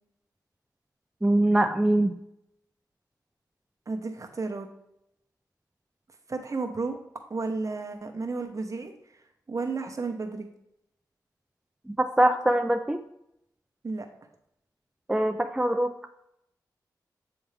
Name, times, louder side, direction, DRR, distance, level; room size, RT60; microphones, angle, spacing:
voice 1, 1.2-2.2 11.9-13.0 15.1-15.9, right 1 dB, 10° right, 6 dB, 0.4 m, -23 dB
voice 2, 3.9-4.7 6.3-7.0 7.3-8.9 9.5-10.5 13.8-14.0, right 3 dB, 45° right, 5 dB, 1.0 m, -32 dB
8.4 x 3.5 x 3.3 m, 0.81 s
cardioid pair, 50°, 7 cm